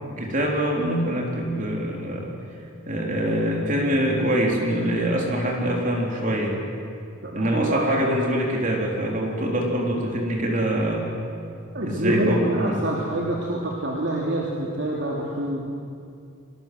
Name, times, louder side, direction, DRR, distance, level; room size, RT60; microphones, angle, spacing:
voice 1, 0.2-2.3 2.9-6.6 7.3-11.0 11.8-12.8, right 1 dB, 40° right, -1 dB, 4.1 m, -24 dB
voice 2, 7.2-7.8 11.7-15.6, right 1 dB, 55° right, -2 dB, 3.0 m, -26 dB
29.0 x 21.5 x 7.9 m, 2.4 s
head